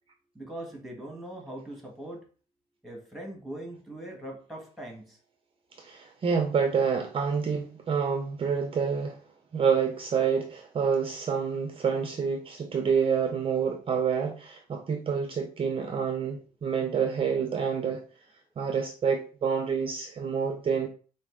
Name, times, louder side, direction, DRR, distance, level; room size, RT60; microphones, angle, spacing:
voice 1, 0.3-2.2 2.8-5.2, right 1 dB, ahead, 1.5 m, -41 dB
voice 2, 5.8-9.2 9.5-18.0 18.6-20.9, right 6 dB, 35° right, 0.6 m, -28 dB
4.7 x 2.6 x 3.7 m
cardioid pair, 110°, 17 cm